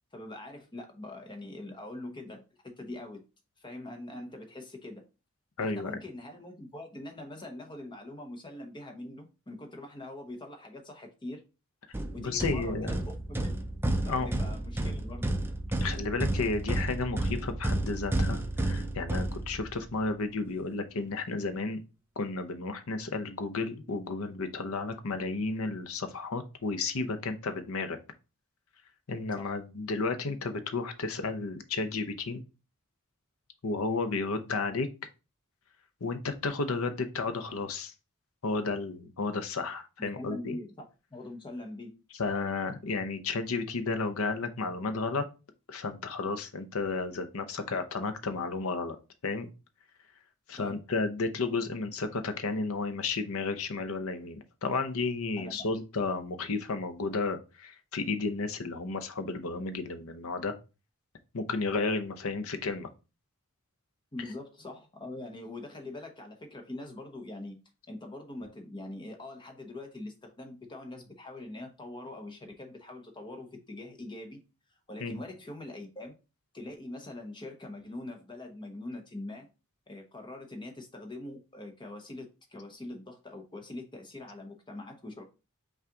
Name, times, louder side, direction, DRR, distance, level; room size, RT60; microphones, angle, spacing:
voice 1, 0.1-3.2 3.6-5.0 5.6-11.4 12.1-13.7 14.0-15.3 29.3-29.6 40.0-42.0 50.6-50.8 55.4-55.6 64.1-67.6 67.9-74.4 74.9-76.1 76.5-79.5 79.9-85.2, left 2 dB, 20° left, 0.9 m, -43 dB
voice 2, 5.6-6.0 12.2-12.9 14.1-14.3 15.8-21.8 22.2-28.0 29.1-32.4 33.6-34.9 36.0-37.9 38.4-40.6 42.2-45.2 45.7-49.0 49.2-49.5 50.5-60.5 61.3-62.9 75.0-75.2, left 3 dB, 70° left, 0.7 m, -32 dB
sound 1, 11.9-19.9, right 1 dB, 10° right, 0.4 m, -31 dB
5.6 x 2.4 x 3.7 m
head